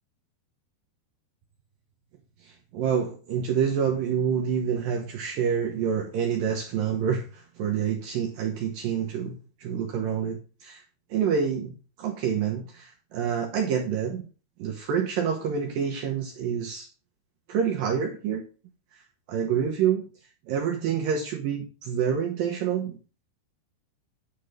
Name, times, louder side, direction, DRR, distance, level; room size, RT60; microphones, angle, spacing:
voice 1, 2.4-10.8 11.1-14.3 14.6-16.9 17.5-18.4 19.3-20.0 20.5-23.0, right 7 dB, 75° right, 1 dB, 2.2 m, -27 dB
10.0 x 3.7 x 6.5 m, 0.35 s
omnidirectional pair, 5.0 m